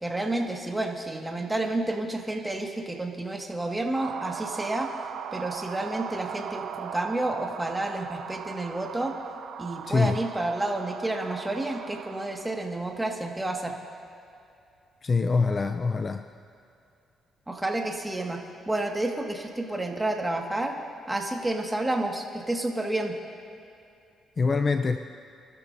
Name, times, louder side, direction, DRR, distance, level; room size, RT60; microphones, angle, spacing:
voice 1, 0.0-4.9 5.3-9.1 9.6-13.8 17.5-18.4 18.6-20.8 21.1-23.1, right 2 dB, 10° right, 1 dB, 1.8 m, -30 dB
sound 1, 3.9-12.7, right 8 dB, 80° right, 0.7 m, -39 dB
voice 2, 9.8-10.2 15.0-16.3 24.4-25.0, left 4 dB, 35° left, 8 dB, 0.5 m, -24 dB
27.5 x 13.0 x 2.7 m, 2.6 s
cardioid pair, 90°, 0 cm